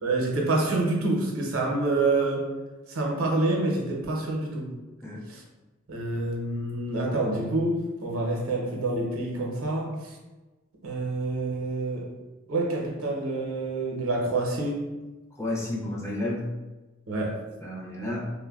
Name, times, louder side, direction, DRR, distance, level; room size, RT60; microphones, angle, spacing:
voice 1, 0.0-2.5 2.9-4.7 5.3-5.4 5.9-10.1 10.8-12.1 12.5-14.8 17.1-17.4, right 2 dB, 75° right, -1 dB, 0.6 m, -27 dB
voice 2, 15.4-16.5 17.6-18.3, left 1 dB, 15° left, -4 dB, 0.4 m, -31 dB
3.3 x 2.2 x 2.3 m, 1.2 s
head